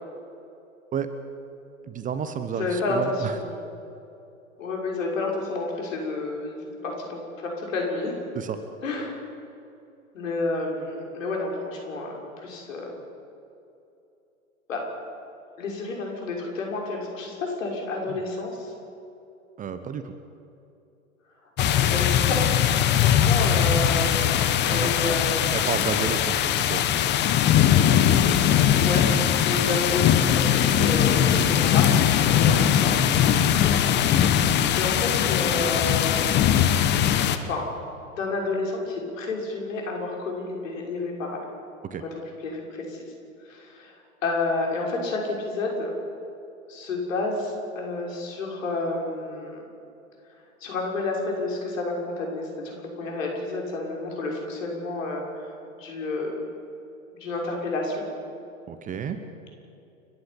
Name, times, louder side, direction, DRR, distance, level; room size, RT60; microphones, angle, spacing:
voice 1, 1.9-3.3 8.3-8.6 18.1-18.2 19.6-20.1 24.7-24.9 25.5-26.9 29.7-29.8 32.4-32.7 34.2-34.3 41.9-42.0 58.7-59.2, right 7 dB, 20° right, 9 dB, 1.1 m, -31 dB
voice 2, 2.6-3.6 4.6-8.2 8.8-9.2 10.1-12.9 14.7-14.8 15.6-18.7 21.6-22.6 22.9-24.2 24.7-25.5 28.8-29.0 29.4-32.9 34.8-36.2 37.4-37.6 38.1-41.4 42.0-42.1 42.4-43.0 43.4-43.9 44.2-45.9 46.7-49.6 50.6-55.5 55.8-56.4 57.1-58.1, left 3 dB, 65° left, 0 dB, 6.3 m, -30 dB
sound 1, 21.6-37.4, left 9 dB, 25° left, 1.3 m, -21 dB
30.0 x 11.5 x 8.8 m, 2.8 s
figure-of-eight pair, 105°, 42 cm